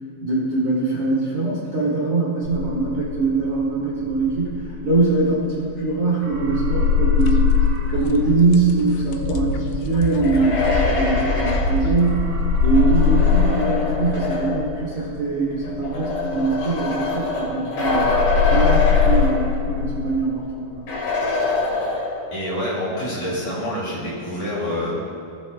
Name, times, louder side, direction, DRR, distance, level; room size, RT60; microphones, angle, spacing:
voice 1, 0.2-7.6 7.9-12.3 12.6-18.2 18.5-20.8, right 3 dB, 90° right, -8 dB, 1.2 m, -22 dB
sound 1, 2.4-5.9 6.2-11.7 12.0-17.5 17.8-20.2, left 6 dB, 65° right, 2.8 m, -22 dB
sound 2, 7.2-7.3 7.7-12.7, left 3 dB, 85° left, 2.2 m, -26 dB
sound 3, 10.0-14.7 15.6-19.8 20.1-20.2 20.9-22.4, left 3 dB, 55° left, 3.9 m, -25 dB
voice 2, 22.3-24.9, left 1 dB, 40° left, -6 dB, 3.2 m, -27 dB
18.0 x 8.1 x 2.2 m, 2.7 s
omnidirectional pair, 4.9 m